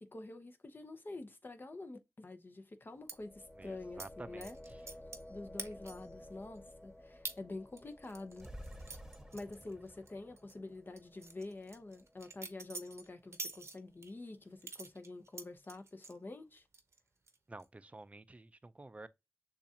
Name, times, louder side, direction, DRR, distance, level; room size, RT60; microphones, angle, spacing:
voice 1, 0.0-4.6 4.8-5.0 5.3-8.5 9.3-16.6, left 2 dB, 40° left, 0.8 m, -47 dB
sound 1, 3.0-12.9, left 1 dB, 20° left, 2.0 m, -55 dB
sound 2, 3.1-3.2 4.0-4.1 4.4-5.3 5.6-6.1 6.5-6.6 7.2-7.4 7.8-10.1 10.4-10.5 11.0-14.1 14.6-16.2 16.6-17.0 17.3-17.6, right 3 dB, 65° right, 0.8 m, -47 dB
voice 2, 3.6-4.8 17.5-19.1, right 2 dB, 25° right, 0.4 m, -51 dB
sound 3, 8.4-11.8, equal, 10° right, 1.1 m, -52 dB
6.8 x 2.4 x 2.8 m
cardioid pair, 50°, 5 cm